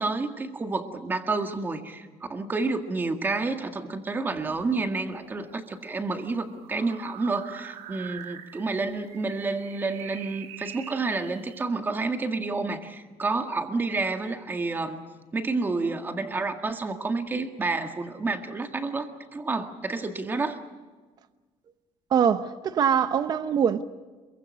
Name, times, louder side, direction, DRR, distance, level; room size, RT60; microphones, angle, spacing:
voice 1, 0.0-15.0 15.3-20.6, right 3 dB, 15° right, 1.8 m, -29 dB
sound 1, 4.2-11.6, right 10 dB, 65° right, 1.8 m, -45 dB
voice 2, 22.1-23.8, right 8 dB, 35° right, 0.9 m, -23 dB
27.5 x 23.0 x 6.4 m
cardioid pair, 180°, 12 cm